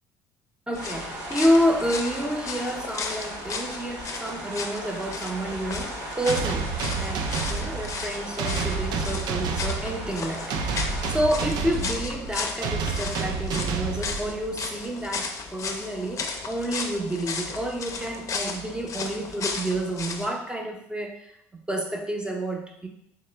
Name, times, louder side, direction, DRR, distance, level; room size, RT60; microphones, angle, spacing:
sound 1, 0.7-20.3, left 4 dB, 40° left, 0.5 m, -35 dB
voice 1, 0.7-21.4 21.7-22.9, equal, 10° right, 2 dB, 0.7 m, -29 dB
sound 2, 0.7-11.1, right 1 dB, 90° right, 0.8 m, -38 dB
sound 3, 6.3-14.7, right 5 dB, 60° right, 0.4 m, -30 dB
3.1 x 3.0 x 3.3 m, 0.74 s
supercardioid pair, 80°, 8 cm